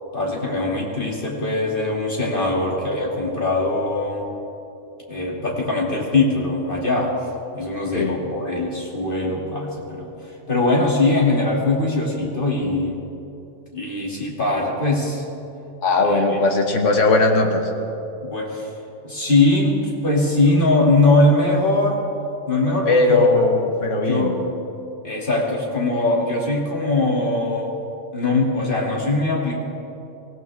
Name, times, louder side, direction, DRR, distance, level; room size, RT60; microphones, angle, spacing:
voice 1, 0.1-4.2 5.1-7.2 7.5-10.1 10.5-13.0 13.7-15.2 16.0-16.4 18.2-18.7 19.0-22.0 22.5-23.2 24.1-24.4 25.0-27.8 28.1-29.6, left 2 dB, 45° left, -3 dB, 2.7 m, -21 dB
voice 2, 15.8-17.7 22.8-24.4, left 3 dB, 85° left, 3 dB, 1.7 m, -18 dB
24.0 x 16.5 x 3.6 m, 2.9 s
omnidirectional pair, 1.2 m